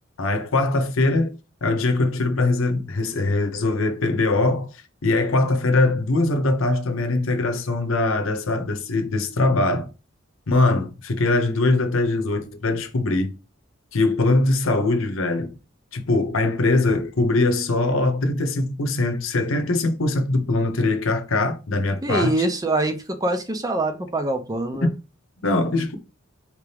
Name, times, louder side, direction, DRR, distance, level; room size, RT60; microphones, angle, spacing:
voice 1, 0.2-1.3 1.6-4.7 5.0-9.9 10.5-13.3 13.9-15.5 15.9-22.4 24.8-24.9 25.4-26.0, left 2 dB, 80° left, 0.8 m, -22 dB
voice 2, 22.0-24.9, right 2 dB, 20° right, 0.5 m, -24 dB
4.7 x 2.8 x 3.4 m
head